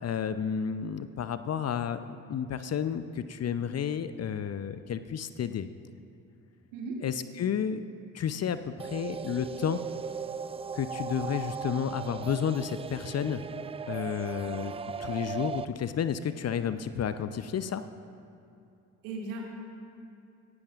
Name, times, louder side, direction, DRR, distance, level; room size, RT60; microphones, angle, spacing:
voice 1, 0.0-5.7 7.0-7.8 8.1-9.8 10.7-13.4 13.9-14.7 15.0-17.8, left 8 dB, 35° left, 12 dB, 0.7 m, -31 dB
sound 1, 8.8-15.6, right 6 dB, 15° right, 0.3 m, -37 dB
voice 2, 19.0-19.4, right 3 dB, 70° right, -2 dB, 2.6 m, -36 dB
26.5 x 13.0 x 2.5 m, 2.6 s
figure-of-eight pair, 45°, 42 cm